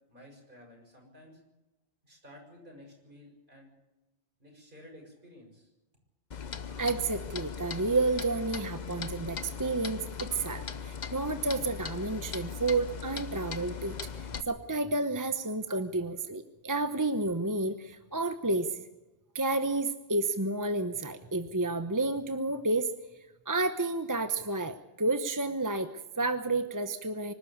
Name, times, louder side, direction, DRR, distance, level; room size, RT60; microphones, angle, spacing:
voice 1, 0.1-1.4 2.0-3.7 4.4-5.7, left 1 dB, 45° right, 1 dB, 6.8 m, -53 dB
Clock, 6.3-14.4, left 6 dB, 40° left, 0.9 m, -39 dB
voice 2, 6.8-18.8 19.3-22.9 23.5-27.3, right 2 dB, 20° right, 9 dB, 0.8 m, -31 dB
25.0 x 12.5 x 8.7 m, 1.0 s
omnidirectional pair, 1.2 m